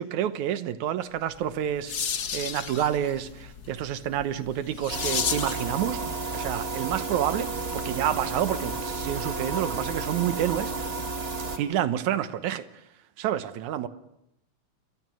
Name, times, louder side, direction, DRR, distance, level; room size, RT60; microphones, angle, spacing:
voice 1, 0.0-1.9 2.3-6.0 6.3-10.9 11.6-12.6 13.2-13.9, right 11 dB, 75° right, 2.4 m, -28 dB
sound 1, 1.3-5.7, left 7 dB, 65° left, 1.0 m, -33 dB
sound 2, 4.9-11.6, right 3 dB, 25° right, 1.5 m, -32 dB
29.5 x 23.5 x 6.3 m
omnidirectional pair, 3.6 m